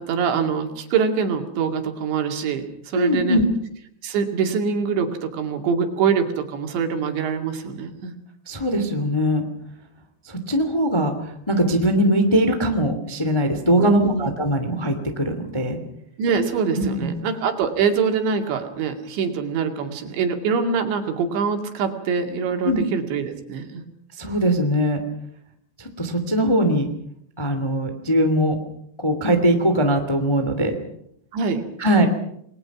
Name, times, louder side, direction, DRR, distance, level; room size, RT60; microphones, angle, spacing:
voice 1, 0.0-3.4 4.0-8.1 13.8-14.3 16.2-23.8 31.3-31.6, right 6 dB, 85° right, 5 dB, 4.7 m, -24 dB
voice 2, 2.9-3.4 8.4-9.4 10.2-15.8 16.7-17.1 22.6-22.8 24.2-25.0 25.8-26.9 27.4-28.6 29.0-30.7 31.8-32.1, equal, 15° left, 6 dB, 1.2 m, -21 dB
28.5 x 21.5 x 6.0 m, 0.71 s
omnidirectional pair, 5.0 m